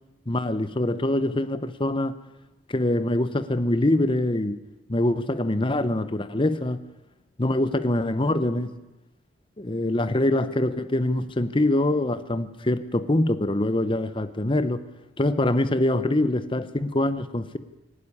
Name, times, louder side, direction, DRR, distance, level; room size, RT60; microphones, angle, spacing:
voice 1, 0.3-2.1 2.7-4.6 4.9-6.8 7.4-8.7 9.6-14.8 15.2-17.6, left 1 dB, 25° left, 13 dB, 0.8 m, -24 dB
23.5 x 12.0 x 9.9 m, 1.0 s
head